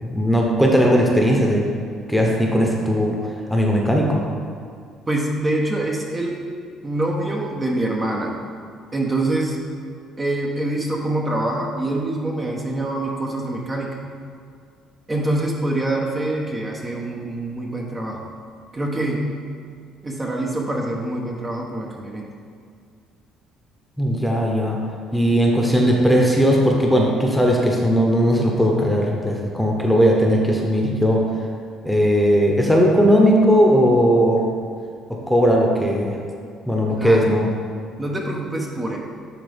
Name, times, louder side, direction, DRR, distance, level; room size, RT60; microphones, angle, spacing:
voice 1, 0.0-1.6 2.1-3.2 3.5-4.2 24.0-24.8 25.1-31.3 31.8-34.4 35.1-36.2 36.7-37.5, equal, ahead, -1 dB, 1.2 m, -18 dB
voice 2, 5.1-6.4 6.8-8.3 8.9-9.6 10.2-14.0 15.1-18.2 18.7-19.3 20.0-22.3 36.9-37.2 38.0-39.0, right 1 dB, 25° right, -2 dB, 1.1 m, -25 dB
10.0 x 3.7 x 3.6 m, 2.2 s
hypercardioid pair, 60°, 0 cm